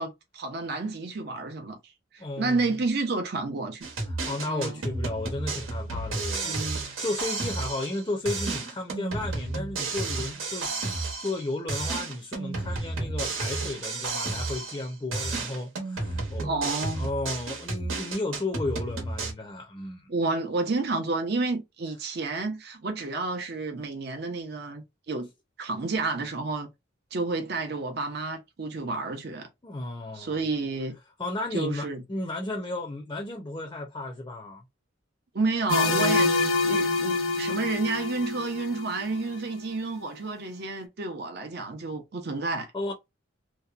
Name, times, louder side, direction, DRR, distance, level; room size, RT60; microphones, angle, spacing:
voice 1, 0.0-1.8 2.1-3.9 4.5-4.8 6.4-6.8 16.4-17.1 20.1-25.3 25.6-26.7 27.1-29.5 30.1-31.0 31.5-32.0 35.3-42.9, right 3 dB, 50° right, 0.6 m, -30 dB
voice 2, 2.2-2.6 4.1-16.6 16.9-20.1 29.6-30.5 31.2-34.6 42.7-42.9, left 2 dB, 20° left, 0.5 m, -34 dB
sound 1, 3.8-8.0 8.3-11.4 11.7-14.9 15.1-19.3, right 3 dB, 85° right, 1.0 m, -32 dB
sound 2, 35.7-39.4, left 3 dB, 75° left, 0.6 m, -26 dB
2.8 x 2.1 x 2.4 m
head